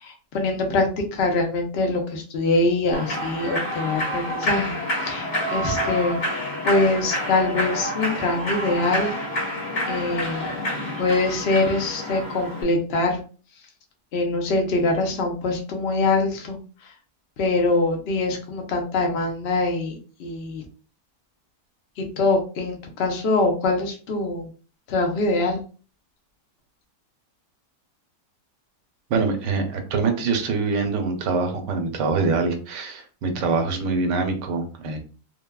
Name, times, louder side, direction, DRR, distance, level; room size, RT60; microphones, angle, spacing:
voice 1, 0.0-9.5 9.9-10.6 11.0-13.2 14.1-16.9 17.4-20.6 22.0-24.5 24.9-25.6, left 2 dB, 60° left, 2 dB, 0.6 m, -24 dB
Human voice / Clapping / Cheering, 2.9-12.6, left 1 dB, 80° left, 1.7 m, -28 dB
voice 2, 29.1-35.0, right 4 dB, 90° right, 6 dB, 1.2 m, -24 dB
3.3 x 2.1 x 2.2 m, 0.38 s
omnidirectional pair, 1.8 m